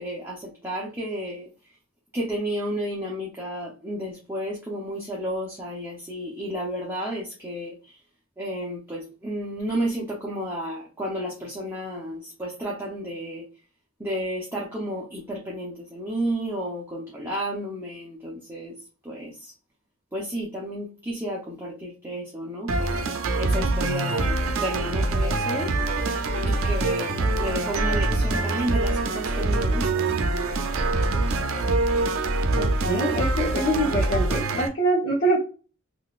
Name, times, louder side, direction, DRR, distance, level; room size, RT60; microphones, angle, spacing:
voice 1, 0.0-1.5 2.1-8.0 8.4-13.5 14.0-18.8 19.0-19.5 20.1-23.0 23.4-25.7 26.5-30.2, right 1 dB, 10° right, -3 dB, 0.6 m, -32 dB
sound 1, 22.7-34.7, right 2 dB, 70° right, 0.5 m, -24 dB
voice 2, 32.6-35.4, right 1 dB, 55° left, -6 dB, 1.0 m, -24 dB
3.8 x 2.4 x 2.3 m, 0.35 s
head